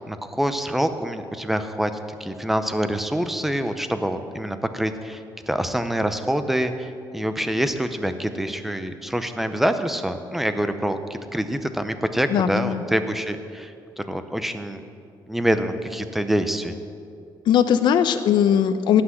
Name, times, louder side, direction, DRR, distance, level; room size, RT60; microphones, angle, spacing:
voice 1, 0.1-1.9 2.2-14.8 15.3-16.8, right 1 dB, 5° right, 9 dB, 0.6 m, -26 dB
voice 2, 12.3-12.8 17.5-19.0, left 9 dB, 70° left, 10 dB, 0.7 m, -19 dB
17.5 x 6.0 x 7.9 m, 2.5 s
cardioid pair, 165°, 8 cm